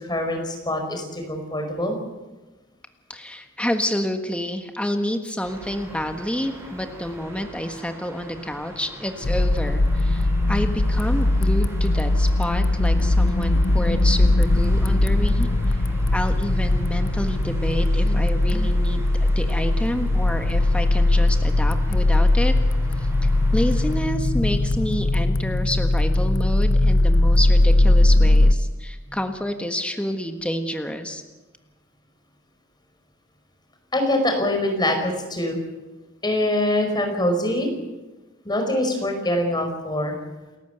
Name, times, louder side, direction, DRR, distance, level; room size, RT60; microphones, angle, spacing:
voice 1, 0.0-2.0 29.1-29.2 33.9-35.6 36.2-37.7 38.4-40.1, left 1 dB, 20° left, 3 dB, 5.1 m, -24 dB
voice 2, 3.1-15.8 16.1-22.5 23.0-31.2, equal, 5° left, 5 dB, 1.5 m, -29 dB
sound 1, 5.4-24.0, right 1 dB, 15° right, 7.6 m, -42 dB
sound 2, 9.2-28.5, left 2 dB, 80° left, 0.9 m, -19 dB
29.0 x 13.5 x 8.1 m, 1.1 s
head